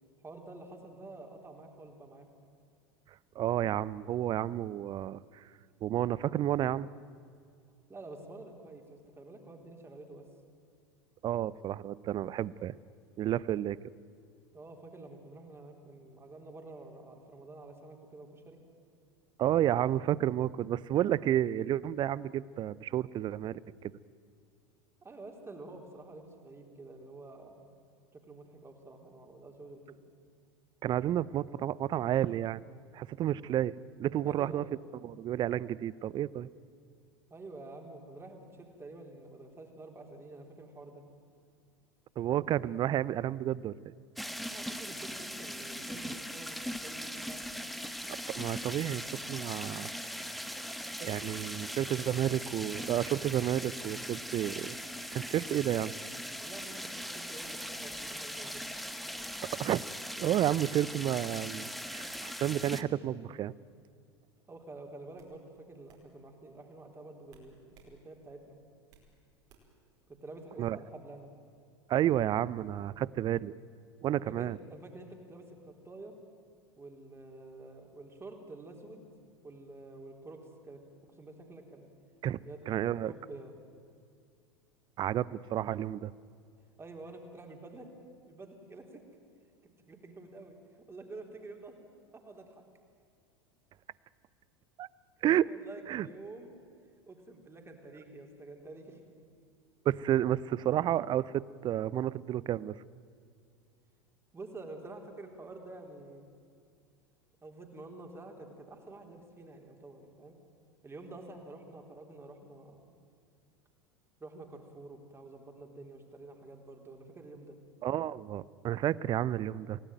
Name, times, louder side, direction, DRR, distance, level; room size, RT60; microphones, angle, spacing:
voice 1, 0.2-2.3 7.9-10.3 14.5-18.6 25.0-27.6 28.1-30.0 34.3-34.9 37.3-41.0 44.5-47.4 56.4-58.6 64.5-67.6 67.8-68.6 70.1-71.3 74.1-76.2 76.8-79.1 79.4-80.8 81.2-81.9 82.5-83.5 86.8-87.9 88.3-89.0 89.9-90.6 90.9-91.8 92.1-92.6 95.5-96.5 97.1-99.0 104.3-106.3 107.4-110.3 110.8-112.9 114.2-117.6, right 2 dB, 15° right, 3 dB, 3.9 m, -49 dB
voice 2, 3.4-5.2 5.8-6.9 11.2-12.8 13.2-13.8 19.4-23.6 30.8-32.6 32.9-34.6 34.9-36.5 42.2-43.9 48.3-49.9 51.0-54.8 55.1-55.9 59.4-59.8 60.2-63.5 70.6-70.8 71.9-73.5 74.0-74.6 82.2-83.1 85.0-86.1 94.8-94.9 95.2-95.5 95.9-96.1 99.8-102.8 117.8-119.8, right 12 dB, 30° right, 21 dB, 0.6 m, -31 dB
sound 1, 44.2-62.8, equal, ahead, 1.2 m, -40 dB
sound 2, 64.4-64.6 65.2-65.4 65.9-66.1 67.3-67.9 68.3-69.1 69.5-69.8, right 5 dB, 50° right, 5.0 m, -61 dB
27.5 x 17.5 x 9.3 m, 2.3 s
figure-of-eight pair, 80°, 14 cm